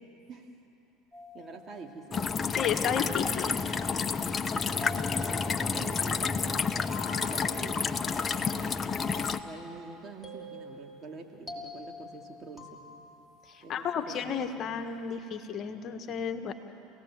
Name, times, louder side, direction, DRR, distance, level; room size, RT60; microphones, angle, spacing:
sound 1, 1.1-2.2 2.9-3.8 4.8-6.4 6.9-8.1 9.1-13.4, left 3 dB, ahead, 3.7 m, -46 dB
voice 1, 1.3-2.6 4.6-6.9 7.3-7.9 8.4-8.8 9.4-12.8 13.6-14.7, right 4 dB, 40° right, 2 dB, 2.8 m, -46 dB
sound 2, 2.1-9.4, left 5 dB, 30° left, 0.9 m, -30 dB
voice 2, 2.5-3.6 13.5-16.5, left 7 dB, 45° left, 7 dB, 1.4 m, -33 dB
28.5 x 18.0 x 7.5 m, 2.9 s
hypercardioid pair, 85°, 0 cm